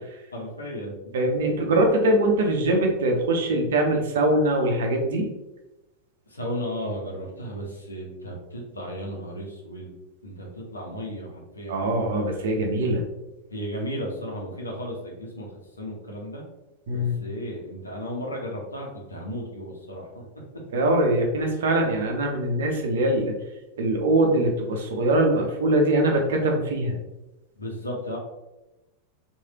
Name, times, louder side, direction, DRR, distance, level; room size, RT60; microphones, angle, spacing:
voice 1, 0.3-0.9 6.3-9.9 10.2-12.2 13.5-15.5 15.8-16.4 16.9-20.2 27.6-28.2, equal, 80° left, -1 dB, 0.9 m, -34 dB
voice 2, 1.1-5.3 11.7-13.1 16.9-17.2 20.7-23.3 23.8-27.0, right 1 dB, 60° right, 2 dB, 0.7 m, -22 dB
3.2 x 2.6 x 2.8 m, 0.99 s
figure-of-eight pair, 90°, 0 cm